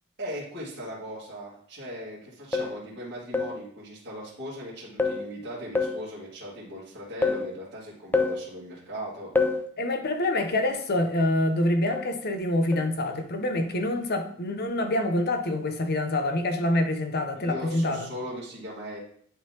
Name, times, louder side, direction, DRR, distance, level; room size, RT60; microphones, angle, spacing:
voice 1, 0.2-9.3 17.3-19.0, equal, 50° right, -8 dB, 2.1 m, -38 dB
sound 1, 2.5-2.8 3.3-3.6 5.0-5.3 5.7-6.1 7.2-7.5 8.1-8.5 9.4-9.7 11.9-12.2 12.7-12.9, left 3 dB, 10° left, 0.3 m, -26 dB
voice 2, 9.8-18.0, left 1 dB, 45° left, 6 dB, 0.8 m, -26 dB
10.0 x 3.8 x 2.9 m, 0.64 s
head